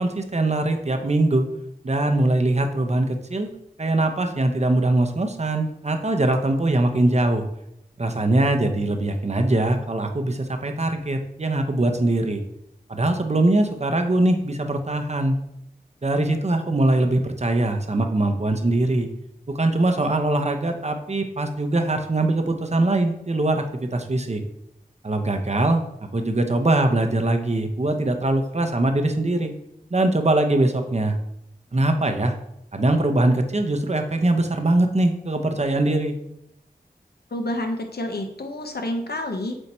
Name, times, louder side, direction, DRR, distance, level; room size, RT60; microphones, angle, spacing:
voice 1, 0.0-1.5 1.8-3.5 3.8-7.4 8.0-12.4 12.9-15.4 16.0-19.1 19.5-24.4 25.0-25.8 26.1-29.5 29.9-31.2 31.7-32.3 32.7-36.1, right 2 dB, 40° right, 6 dB, 0.8 m, -22 dB
voice 2, 37.3-39.5, left 1 dB, 75° left, 4 dB, 0.9 m, -28 dB
7.9 x 2.8 x 4.3 m, 0.81 s
wide cardioid pair, 40°, 17 cm